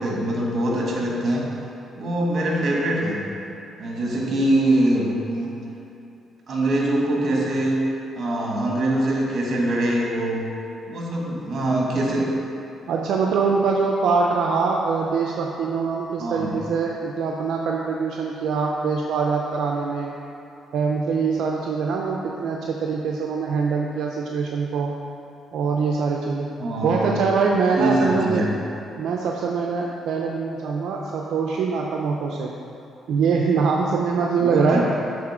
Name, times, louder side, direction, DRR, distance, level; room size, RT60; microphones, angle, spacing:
voice 1, 0.0-1.4 2.0-3.2 3.8-5.6 6.5-7.8 8.2-10.4 10.9-12.3 16.2-16.6 26.6-27.2 27.8-28.5 34.4-34.8, right 1 dB, 50° right, -3 dB, 1.5 m, -23 dB
voice 2, 12.9-20.2 20.7-24.9 25.5-26.5 26.8-28.4 29.0-32.5 33.1-34.8, right 5 dB, 75° right, -1 dB, 0.4 m, -23 dB
7.2 x 3.7 x 4.9 m, 2.8 s
cardioid pair, 90°, 0 cm